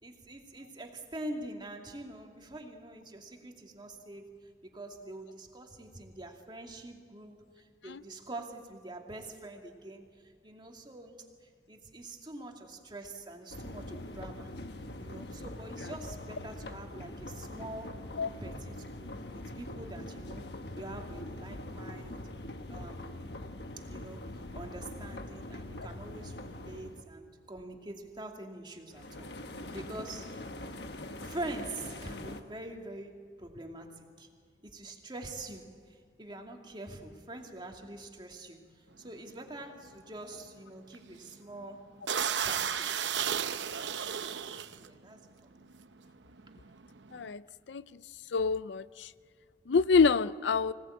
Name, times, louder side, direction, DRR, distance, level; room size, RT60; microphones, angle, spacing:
voice 1, 0.0-4.4 4.6-14.5 15.0-18.0 18.4-20.5 20.8-22.2 22.7-23.2 23.8-30.4 31.2-34.3 34.6-41.9 42.3-42.9 43.5-44.2 44.8-45.6, right 2 dB, 25° right, 2 dB, 2.4 m, -45 dB
sound 1, 13.5-27.1 28.9-32.4, left 1 dB, 65° left, 1.5 m, -43 dB
sound 2, 39.1-39.3 39.8-40.0 40.2-40.4 40.9-41.3 41.6-41.7 42.0-44.9 45.6-45.8 46.1-47.3, right 8 dB, 90° right, 0.8 m, -33 dB
voice 2, 48.3-48.8 49.7-50.7, left 5 dB, 80° left, 16 dB, 0.5 m, -25 dB
25.5 x 18.5 x 8.7 m, 2.2 s
head